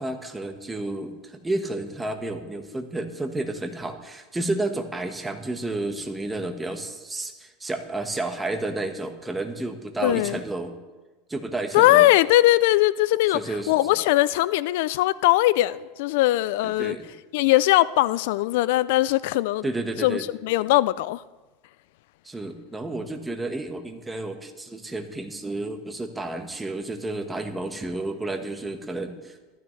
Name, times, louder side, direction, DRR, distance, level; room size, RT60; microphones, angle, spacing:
voice 1, 0.0-10.7 11.3-12.1 13.3-13.7 16.6-17.1 19.6-20.3 22.2-29.4, right 2 dB, 10° right, 1.2 m, -31 dB
voice 2, 10.0-10.4 11.7-13.4 13.7-17.0 17.3-19.6 20.0-21.2, left 16 dB, 70° left, 0.3 m, -20 dB
15.0 x 12.5 x 3.2 m
supercardioid pair, 120°, 0 cm